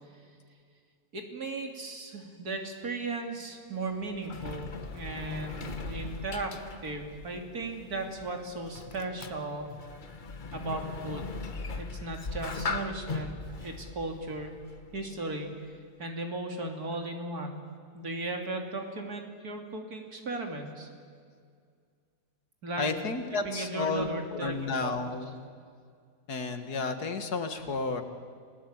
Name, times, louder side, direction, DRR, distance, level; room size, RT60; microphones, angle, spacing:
voice 1, 1.1-9.7 10.5-11.3 11.8-14.5 14.9-15.6 16.0-17.6 17.9-20.9 22.6-22.9 23.4-25.1, right 2 dB, 70° right, 3 dB, 3.4 m, -36 dB
Sliding door, 3.7-15.2, left 4 dB, 35° left, 1.1 m, -40 dB
voice 2, 22.8-25.4 26.3-28.0, left 4 dB, 75° left, 8 dB, 2.3 m, -32 dB
30.0 x 19.0 x 8.9 m, 2.1 s
omnidirectional pair, 1.7 m